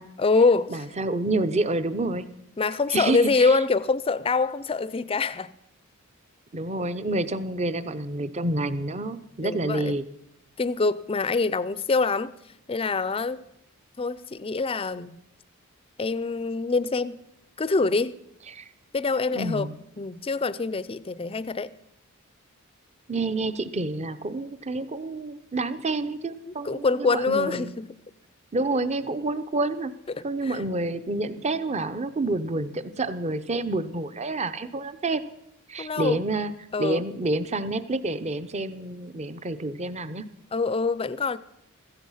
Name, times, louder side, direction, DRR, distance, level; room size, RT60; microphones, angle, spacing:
voice 1, 0.2-0.8 2.6-5.5 9.4-10.0 10.6-12.3 12.7-13.4 14.0-15.2 16.0-17.2 17.6-18.2 18.9-19.7 20.0-21.7 26.5-27.9 30.1-30.6 35.8-36.2 36.7-37.0 40.5-41.4, left 4 dB, 25° left, 0.5 m, -25 dB
voice 2, 0.7-2.3 2.9-3.5 6.5-10.0 18.5-18.6 19.3-19.7 23.1-27.7 28.5-29.9 30.2-35.2 35.7-36.5 36.8-40.3, right 2 dB, 30° right, 0.7 m, -28 dB
16.0 x 14.0 x 5.7 m
head